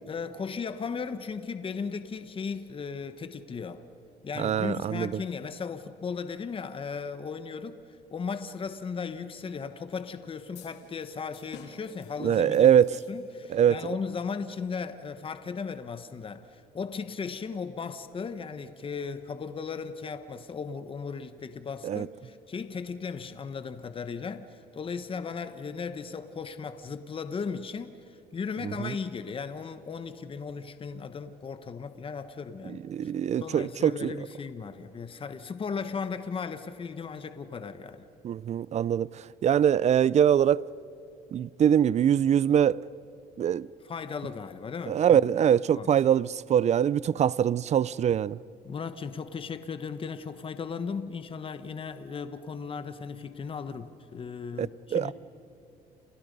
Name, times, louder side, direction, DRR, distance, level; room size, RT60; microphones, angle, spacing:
voice 1, 0.1-3.8 4.2-7.8 8.1-12.7 13.1-33.1 33.4-38.1 43.8-45.2 45.7-45.9 48.6-55.1, left 5 dB, 30° left, 1.3 m, -36 dB
voice 2, 4.4-5.1 12.2-12.9 13.5-13.8 21.8-22.1 28.6-28.9 32.9-34.1 38.2-39.1 39.4-40.6 41.3-42.8 43.4-43.7 44.9-48.4 54.6-55.1, right 9 dB, 40° right, 0.5 m, -23 dB
sound 1, 10.5-13.6, left 8 dB, 80° left, 3.6 m, -51 dB
29.5 x 29.0 x 5.4 m
cardioid pair, 110°, 17 cm